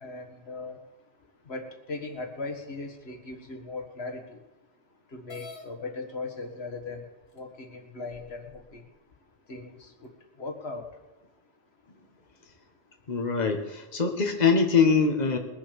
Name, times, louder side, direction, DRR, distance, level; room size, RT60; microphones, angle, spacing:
voice 1, 0.0-0.8 1.5-4.4 5.1-7.1 7.3-8.8 9.5-10.1 10.4-10.9, left 3 dB, 85° left, 3 dB, 1.9 m, -38 dB
sound 1, 5.3-5.7 6.7-6.8 7.4-7.5 8.1-8.8, left 2 dB, 70° left, 1.8 m, -46 dB
voice 2, 13.1-15.4, left 5 dB, 45° left, 4 dB, 1.5 m, -23 dB
21.0 x 7.2 x 6.9 m, 1.1 s
omnidirectional pair, 1.0 m